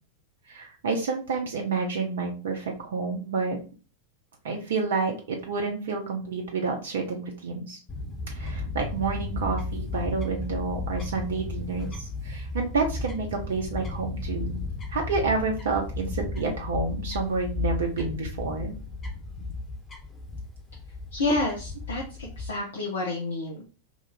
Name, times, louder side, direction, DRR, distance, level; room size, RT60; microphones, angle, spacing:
voice 1, 0.5-3.6 4.4-7.8 8.3-14.6 14.9-18.7, right 4 dB, 60° right, 1 dB, 0.6 m, -29 dB
Fowl / Bird, 7.9-22.5, left 3 dB, 25° left, 1.2 m, -34 dB
voice 2, 21.1-23.6, left 2 dB, 65° left, -2 dB, 0.7 m, -29 dB
2.8 x 2.5 x 4.0 m, 0.35 s
figure-of-eight pair, 90°, 0 cm